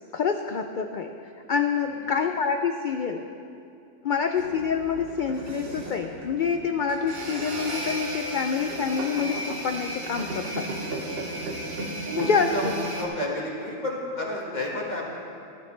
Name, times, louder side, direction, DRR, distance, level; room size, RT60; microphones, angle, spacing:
voice 1, 0.1-1.1 1.5-3.3 4.0-10.7 12.2-12.5, left 6 dB, 65° left, 6 dB, 0.5 m, -27 dB
sound 1, 4.4-13.0, right 1 dB, 50° right, 1.4 m, -34 dB
voice 2, 12.0-12.6 12.9-15.2, left 1 dB, 35° left, -3 dB, 1.9 m, -31 dB
14.5 x 12.0 x 3.3 m, 2.5 s
omnidirectional pair, 1.4 m